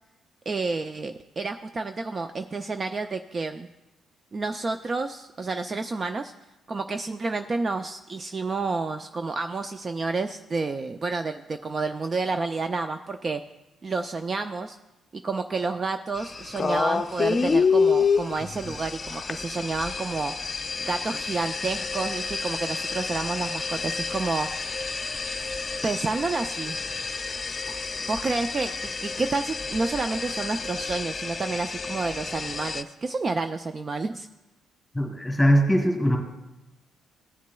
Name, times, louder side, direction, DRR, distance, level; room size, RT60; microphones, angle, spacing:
voice 1, 0.5-3.7 4.3-6.3 6.7-13.4 13.8-14.8 15.1-20.3 20.8-24.5 25.8-26.8 28.0-34.3, right 3 dB, 35° right, 8 dB, 0.4 m, -30 dB
sound 1, 16.2-32.8, left 5 dB, 35° left, 0.5 m, -29 dB
voice 2, 34.9-36.2, equal, 5° left, 1 dB, 2.3 m, -21 dB
16.0 x 7.2 x 2.3 m, 1.0 s
cardioid pair, 90°, 0 cm